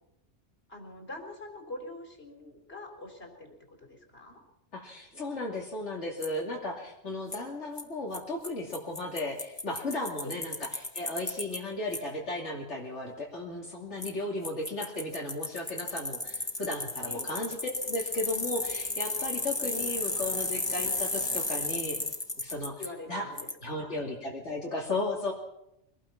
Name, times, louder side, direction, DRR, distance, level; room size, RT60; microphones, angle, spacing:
voice 1, 0.7-4.4 10.2-10.4 17.1-17.3 22.8-23.4 23.7-24.0, left 2 dB, 60° left, 4 dB, 4.2 m, -44 dB
voice 2, 4.7-22.0 22.4-22.8 23.1-23.3 23.6-25.3, left 2 dB, 80° left, -2 dB, 3.1 m, -35 dB
Bicycle, 6.2-6.3 7.3-7.4 7.8-7.9 8.1-8.2 8.4-8.5 8.7-11.6 11.9-12.0 14.0-14.1 14.4-22.9 23.4-23.5, left 2 dB, 20° left, 1.9 m, -33 dB
24.0 x 18.5 x 5.8 m, 0.82 s
omnidirectional pair, 1.2 m